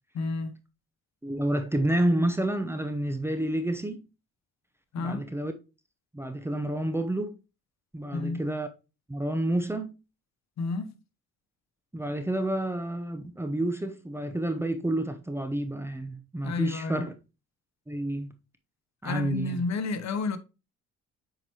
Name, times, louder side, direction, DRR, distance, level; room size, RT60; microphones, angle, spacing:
voice 1, 0.1-0.6 4.9-5.2 8.1-8.4 10.6-10.9 16.4-17.0 19.0-20.4, left 3 dB, 65° left, 0.9 m, -30 dB
voice 2, 1.2-4.0 5.0-5.5 6.1-7.3 7.9-8.7 9.1-9.9 11.9-17.1 17.9-18.3 19.0-19.7, right 1 dB, 10° right, 0.8 m, -29 dB
7.9 x 4.6 x 2.9 m
cardioid pair, 90°, 30 cm